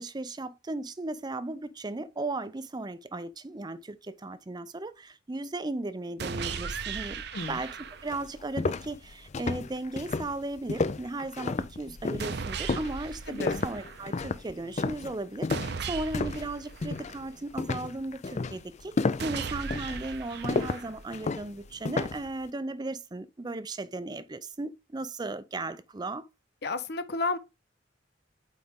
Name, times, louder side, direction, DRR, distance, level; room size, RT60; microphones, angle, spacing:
voice 1, 0.0-7.2 7.5-26.3, right 2 dB, 20° right, 0.5 m, -36 dB
sound 1, 6.2-8.2 12.2-14.2 15.5-17.5 19.2-21.2, right 5 dB, 60° right, 0.7 m, -37 dB
sound 2, 7.6-7.7 8.1-16.5 16.8-17.2 17.6-22.3, left 3 dB, 40° left, 0.4 m, -32 dB
voice 2, 13.3-13.6 26.6-27.4, left 3 dB, 60° left, 0.7 m, -32 dB
8.7 x 4.2 x 3.6 m
head